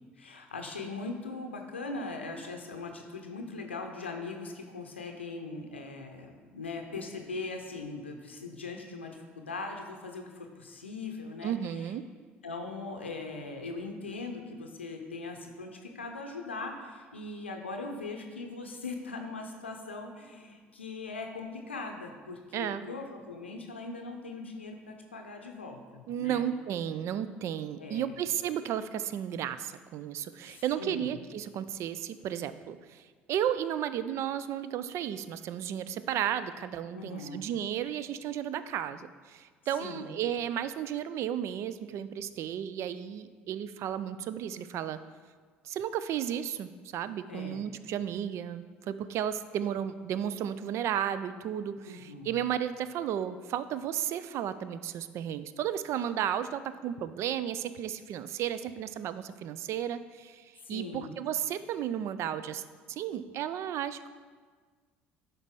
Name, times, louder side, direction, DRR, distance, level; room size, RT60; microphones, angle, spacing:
voice 1, 0.2-11.9 12.4-26.4 27.8-28.2 30.4-31.2 36.9-37.4 39.8-40.1 47.3-47.6 51.8-52.5 60.6-61.1, left 3 dB, 85° left, 3 dB, 0.6 m, -40 dB
voice 2, 11.4-12.1 22.5-22.8 26.1-33.0 33.3-45.0 45.6-62.6 62.9-64.1, right 10 dB, 50° right, 14 dB, 0.4 m, -33 dB
11.0 x 4.1 x 3.6 m, 1.5 s
figure-of-eight pair, 55°, 6 cm